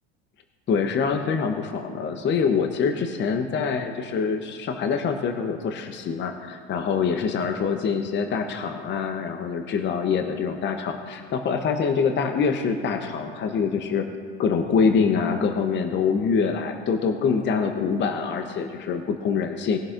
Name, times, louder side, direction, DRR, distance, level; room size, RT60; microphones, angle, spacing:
voice 1, 0.7-14.1 14.4-19.8, left 5 dB, 30° left, 6 dB, 0.8 m, -25 dB
20.0 x 11.0 x 2.5 m, 2.2 s
hypercardioid pair, 85°, 35 cm